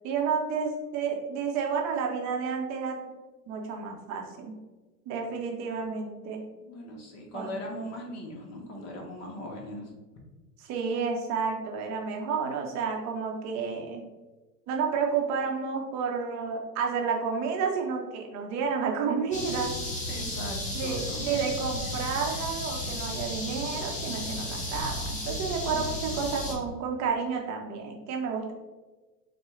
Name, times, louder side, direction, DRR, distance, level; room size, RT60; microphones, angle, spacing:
voice 1, 0.0-3.0 3.5-4.6 5.1-6.4 7.3-7.5 10.6-14.0 14.7-19.7 20.7-28.5, right 5 dB, 35° right, 1 dB, 0.9 m, -30 dB
voice 2, 6.6-9.9 20.1-21.5 25.6-25.9, left 1 dB, 30° left, 0 dB, 1.2 m, -39 dB
sound 1, 19.3-26.5, left 1 dB, 15° left, 1.0 m, -34 dB
6.3 x 2.4 x 3.2 m, 1.2 s
hypercardioid pair, 110°, 50 cm